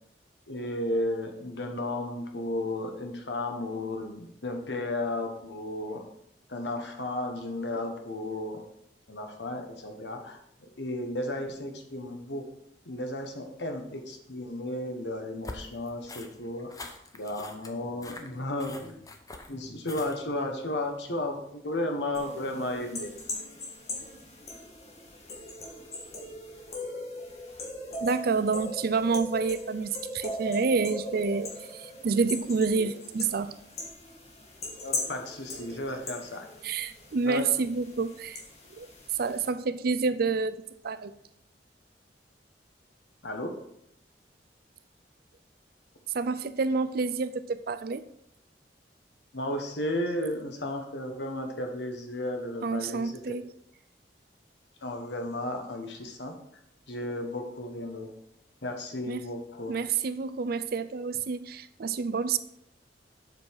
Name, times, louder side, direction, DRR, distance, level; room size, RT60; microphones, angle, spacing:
voice 1, 0.5-6.0 6.5-8.6 9.1-12.4 12.8-16.7 17.1-19.0 19.5-23.1 32.7-32.9 34.8-36.5 37.2-37.4 43.2-43.6 49.3-53.2 54.8-56.3 56.9-58.1 58.6-59.8, left 1 dB, 80° left, 4 dB, 1.3 m, -34 dB
sound 1, 15.4-20.4, left 2 dB, 20° left, 0.7 m, -44 dB
sound 2, 22.1-39.5, left 2 dB, 40° left, 1.7 m, -40 dB
voice 2, 28.0-33.5 36.6-38.4 38.8-38.9 39.2-40.6 40.8-41.1 46.1-48.0 52.6-53.4 59.1-59.2 59.7-62.4, right 4 dB, 60° right, 13 dB, 0.5 m, -28 dB
7.6 x 5.5 x 4.7 m, 0.75 s
head